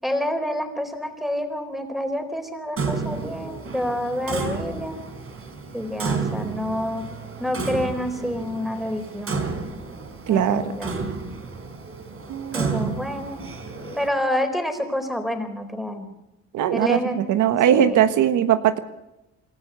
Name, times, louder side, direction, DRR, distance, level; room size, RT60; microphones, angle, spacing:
voice 1, 0.0-5.0 5.7-7.1 7.4-9.4 10.3-10.9 12.5-13.4 13.9-16.1 16.7-17.2 17.7-18.1, left 1 dB, ahead, 6 dB, 4.2 m, -28 dB
Clock, 2.8-14.1, right 4 dB, 45° right, 4.0 m, -31 dB
voice 2, 10.3-10.7 12.3-12.7 16.5-18.8, right 10 dB, 80° right, 10 dB, 1.3 m, -20 dB
28.0 x 13.5 x 6.9 m, 0.92 s
cardioid pair, 90°, 30 cm